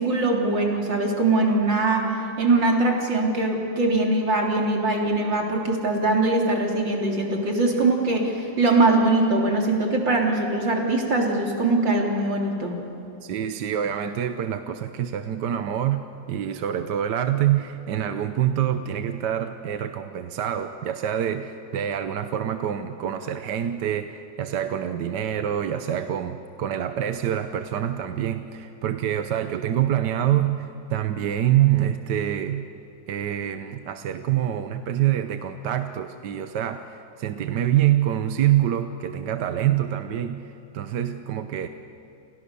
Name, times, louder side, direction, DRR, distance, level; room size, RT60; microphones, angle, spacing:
voice 1, 0.0-12.8, right 2 dB, 85° right, 1 dB, 4.2 m, -22 dB
voice 2, 13.2-16.0 16.3-32.7 33.1-41.7, right 11 dB, 70° right, 9 dB, 1.5 m, -26 dB
29.5 x 28.0 x 6.9 m, 2.9 s
omnidirectional pair, 2.0 m